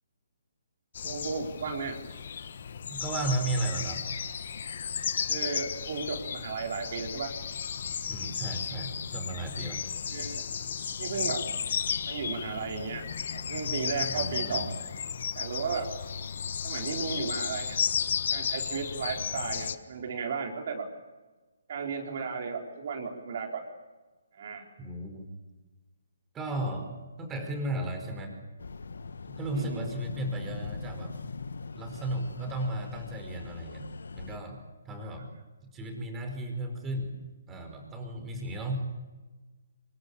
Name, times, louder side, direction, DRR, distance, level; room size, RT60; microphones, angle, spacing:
sound 1, 0.9-19.8, left 7 dB, 55° left, 1.4 m, -34 dB
voice 1, 1.0-2.0 5.3-7.3 10.1-10.4 11.0-11.4 12.1-13.0 13.3-14.7 15.3-15.9 16.6-17.8 18.3-20.9 21.7-23.6 24.4-24.7 29.5-29.9, right 5 dB, 50° right, 2 dB, 4.5 m, -34 dB
voice 2, 2.9-4.0 8.1-9.8 14.1-14.6 24.8-25.3 26.3-28.3 29.3-31.2 31.8-34.6 34.8-35.3 35.7-37.2 37.5-38.8, right 1 dB, 15° right, 4 dB, 5.0 m, -34 dB
sound 2, 28.6-34.4, left 4 dB, 80° left, 1.5 m, -41 dB
24.5 x 22.5 x 8.8 m, 1.2 s
hypercardioid pair, 155°, 0 cm